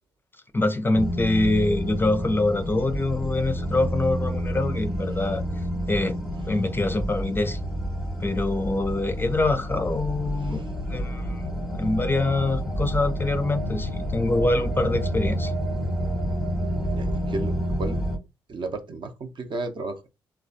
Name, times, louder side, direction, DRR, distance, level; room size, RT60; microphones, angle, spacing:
voice 1, 0.5-5.4 5.9-6.2 6.5-7.6 8.2-11.4 11.8-15.5, left 2 dB, 20° left, 0.4 m, -25 dB
sound 1, 0.9-18.2, equal, ahead, 0.8 m, -29 dB
voice 2, 10.4-10.7 16.9-18.0 18.5-20.1, right 2 dB, 45° right, 0.6 m, -33 dB
3.1 x 2.3 x 2.6 m
hypercardioid pair, 45°, 11 cm